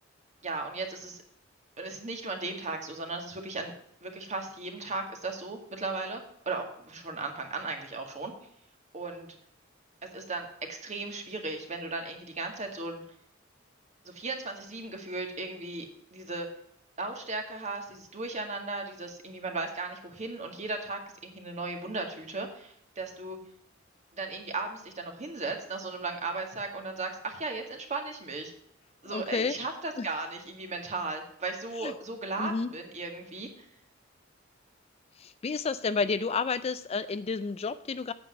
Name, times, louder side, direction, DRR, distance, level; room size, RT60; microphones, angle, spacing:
voice 1, 0.4-1.2 1.8-3.7 4.0-8.3 8.9-9.3 10.1-13.0 14.1-15.9 16.1-16.5 17.0-23.4 24.1-28.5 29.0-33.7, right 3 dB, 35° right, 3 dB, 1.9 m, -36 dB
voice 2, 29.1-29.6 30.0-30.1 31.8-31.9 32.4-32.7 35.2-38.1, left 4 dB, 30° left, 13 dB, 0.4 m, -30 dB
8.7 x 7.9 x 6.3 m, 0.69 s
head